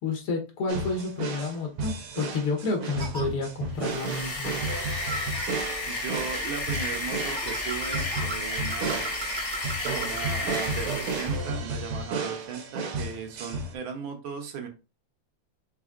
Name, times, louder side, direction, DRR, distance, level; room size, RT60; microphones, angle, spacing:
voice 1, 0.0-4.6, left 3 dB, 75° left, 2.0 m, -30 dB
sound 1, 0.7-13.7, right 3 dB, 85° right, 1.7 m, -33 dB
sound 2, 3.0-3.2 5.1-5.5 7.3-10.2, right 3 dB, 20° right, 0.8 m, -38 dB
sound 3, 3.7-11.5, left 2 dB, 45° left, 1.0 m, -32 dB
voice 2, 5.8-9.1 9.9-14.7, right 6 dB, 70° right, 1.6 m, -37 dB
5.0 x 3.5 x 2.4 m
omnidirectional pair, 2.4 m